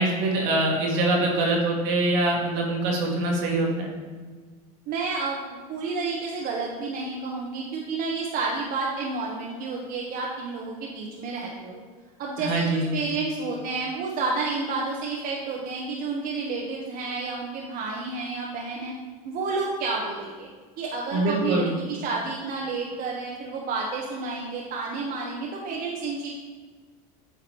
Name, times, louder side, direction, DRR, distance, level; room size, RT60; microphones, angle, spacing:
voice 1, 0.0-3.9 12.4-12.9 21.1-21.7, right 2 dB, 65° right, -1 dB, 1.6 m, -24 dB
voice 2, 4.9-11.8 12.2-18.9 19.2-20.5 20.8-26.3, right 3 dB, 50° right, -2 dB, 1.0 m, -30 dB
8.4 x 2.9 x 4.6 m, 1.5 s
hypercardioid pair, 85°, 20 cm